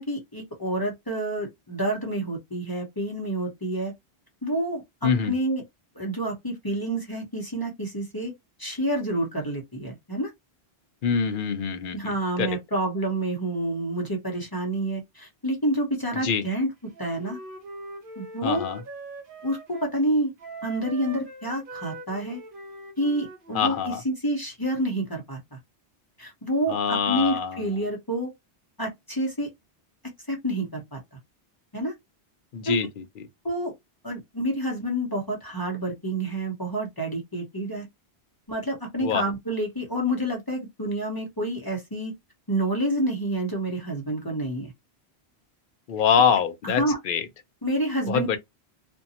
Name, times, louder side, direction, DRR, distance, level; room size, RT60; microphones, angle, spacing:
voice 1, 0.0-3.9 4.4-5.6 5.9-8.3 8.6-10.3 11.9-17.4 18.2-18.6 19.4-20.3 20.6-22.4 23.0-25.6 26.2-28.3 28.8-29.5 30.3-31.0 31.7-31.9 32.6-32.8 33.4-33.7 34.0-37.9 38.5-42.1 42.5-44.7 46.6-47.0 47.6-48.4, right 1 dB, 25° left, 0.7 m, -28 dB
voice 2, 5.0-5.3 11.0-12.0 12.4-12.5 16.2-16.4 18.4-18.8 23.5-24.0 26.7-27.6 32.5-32.9 39.0-39.2 45.9-47.2 48.1-48.4, left 7 dB, 60° left, 0.6 m, -24 dB
Wind instrument woodwind instrument, 16.9-19.9 20.4-23.9, right 2 dB, 60° right, 0.9 m, -42 dB
2.5 x 2.2 x 2.7 m
omnidirectional pair, 1.1 m